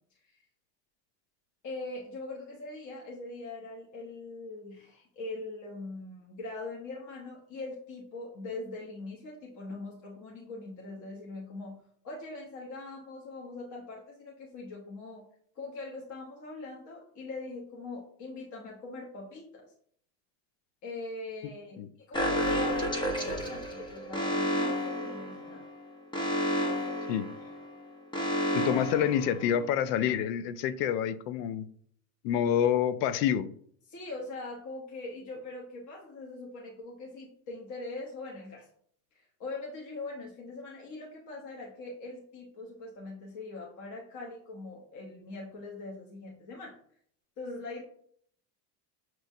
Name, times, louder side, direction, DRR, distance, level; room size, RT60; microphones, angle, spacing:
voice 1, 1.6-15.3 15.5-19.7 20.8-21.8 22.1-25.6 33.9-38.7 39.1-46.7 47.4-47.8, left 2 dB, 40° left, -2 dB, 1.0 m, -42 dB
Alarm, 22.1-29.9, equal, 10° left, 0.4 m, -31 dB
voice 2, 28.5-31.7 32.2-33.5, left 9 dB, 80° left, 13 dB, 0.6 m, -27 dB
6.1 x 3.1 x 2.7 m, 0.62 s
supercardioid pair, 120°, 48 cm